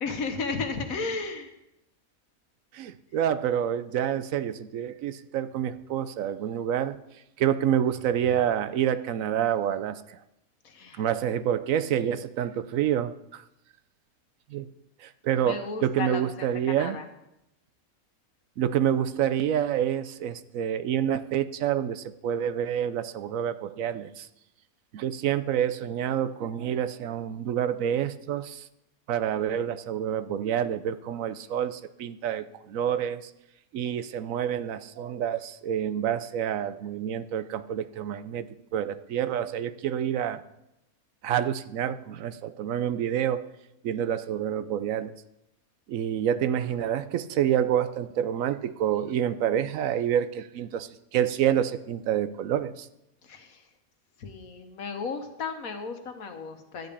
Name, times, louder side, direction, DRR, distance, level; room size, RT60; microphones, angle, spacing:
voice 1, 0.0-1.5 10.6-11.0 15.4-17.1 53.2-53.6 54.2-56.9, left 4 dB, 75° left, 6 dB, 1.6 m, -34 dB
voice 2, 2.7-7.0 7.4-10.2 11.0-13.4 14.5-14.7 15.0-17.0 18.6-24.3 24.9-28.6 29.1-33.3 33.7-40.4 41.2-43.4 43.8-45.1 45.9-52.9, right 10 dB, 75° right, 13 dB, 1.0 m, -28 dB
12.0 x 5.3 x 8.4 m, 0.88 s
omnidirectional pair, 1.5 m